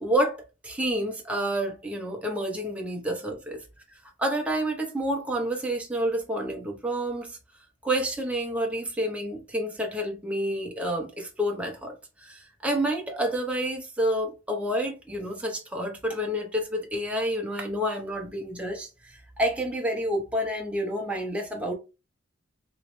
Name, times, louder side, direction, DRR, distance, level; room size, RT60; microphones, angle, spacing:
voice 1, 0.0-3.6 3.9-7.4 7.8-21.7, right 1 dB, 5° right, 0.6 m, -29 dB
3.0 x 2.9 x 3.0 m
head